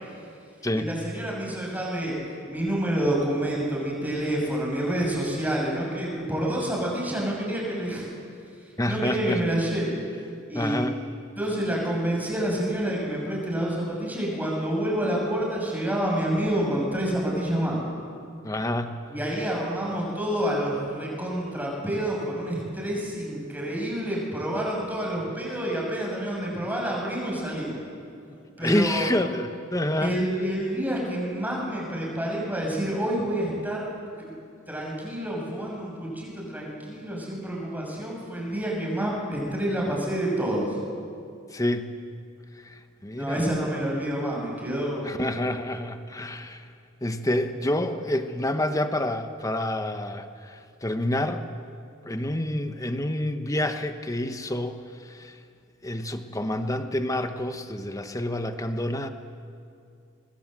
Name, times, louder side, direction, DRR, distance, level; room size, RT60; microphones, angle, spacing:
voice 1, 0.7-2.2 2.4-8.1 8.8-10.0 10.5-11.0 11.4-17.8 19.1-27.8 28.6-29.1 30.0-33.9 34.2-34.3 34.7-40.8 43.1-45.1, right 1 dB, 10° right, -2 dB, 6.4 m, -28 dB
voice 2, 8.8-9.4 10.5-11.0 18.4-19.0 28.6-30.1 41.5-41.9 42.6-43.4 45.0-46.6 47.0-51.4 52.0-55.4 55.8-59.1, left 1 dB, 15° left, 8 dB, 1.2 m, -28 dB
25.0 x 21.0 x 7.6 m, 2.4 s
head